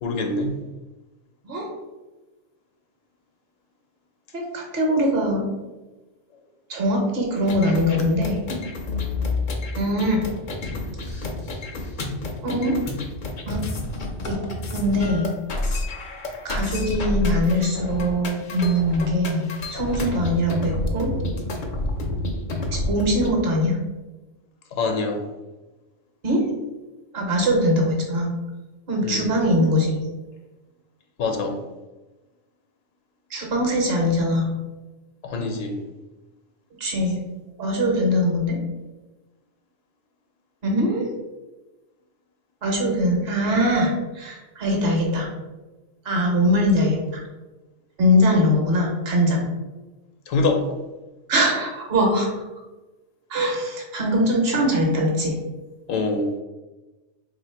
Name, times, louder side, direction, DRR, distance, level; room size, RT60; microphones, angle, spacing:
voice 1, 0.0-0.6 24.7-25.2 29.0-29.4 31.2-31.6 35.2-35.7 50.3-50.7 55.9-56.3, left 3 dB, 80° left, 3 dB, 1.1 m, -24 dB
voice 2, 4.3-5.5 6.7-8.4 9.7-10.2 12.4-12.8 13.5-13.6 14.3-14.4 14.7-15.3 16.4-21.1 22.7-23.8 26.2-26.4 27.1-28.3 28.9-30.0 33.3-34.5 36.8-37.2 37.6-38.6 40.6-41.0 42.6-45.3 46.0-47.2 48.0-49.4 51.3-52.3 53.3-55.3, equal, 50° right, 0 dB, 1.1 m, -22 dB
sound 1, 7.4-23.3, left 2 dB, 50° left, 0.6 m, -29 dB
3.1 x 2.8 x 4.4 m, 1.1 s
omnidirectional pair, 1.3 m